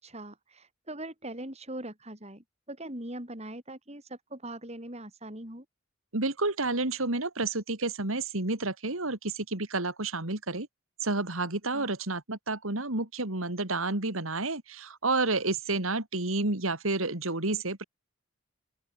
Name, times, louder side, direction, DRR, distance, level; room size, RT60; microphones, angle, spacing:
voice 1, 0.0-5.7 11.7-11.9, right 1 dB, 30° right, 7.1 m, -41 dB
voice 2, 6.1-10.7 11.0-17.8, right 2 dB, 80° right, 3.3 m, -30 dB
open air
head